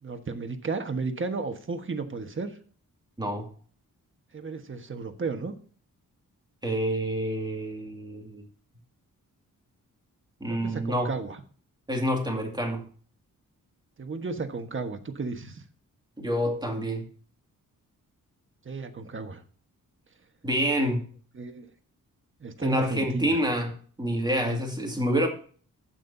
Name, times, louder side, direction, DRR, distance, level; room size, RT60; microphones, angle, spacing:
voice 1, 0.0-2.6 4.3-5.5 10.5-11.4 14.0-15.6 18.6-19.4 21.3-21.7 22.4-23.4 24.4-24.6, right 4 dB, 35° right, 6 dB, 1.4 m, -33 dB
voice 2, 6.6-8.4 10.4-11.1 11.9-12.8 16.2-17.1 20.4-21.0 22.6-23.7 24.0-25.3, equal, 10° right, 2 dB, 2.3 m, -27 dB
12.0 x 9.0 x 2.7 m, 0.44 s
wide cardioid pair, 115°, 33 cm